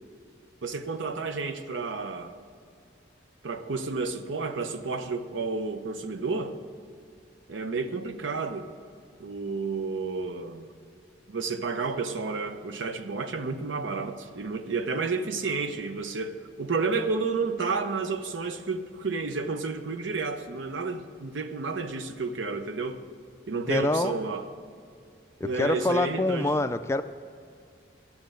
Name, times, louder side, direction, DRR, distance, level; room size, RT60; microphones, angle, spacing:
voice 1, 0.6-2.4 3.4-6.6 7.5-8.7 9.2-10.7 11.3-23.0 23.5-24.5 25.4-26.5, right 4 dB, 85° right, 9 dB, 0.8 m, -31 dB
voice 2, 23.7-24.2 25.4-27.0, left 2 dB, 15° left, 10 dB, 0.3 m, -26 dB
12.0 x 7.3 x 7.8 m, 2.3 s
head